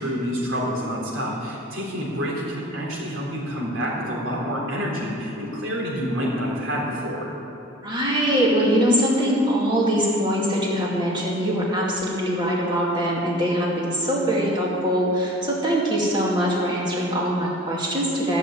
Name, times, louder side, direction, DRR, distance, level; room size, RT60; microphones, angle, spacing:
voice 1, 0.0-7.3, equal, 70° right, -3 dB, 3.3 m, -28 dB
voice 2, 7.8-18.4, equal, 20° right, -5 dB, 2.4 m, -22 dB
14.0 x 6.6 x 8.6 m, 3.0 s
head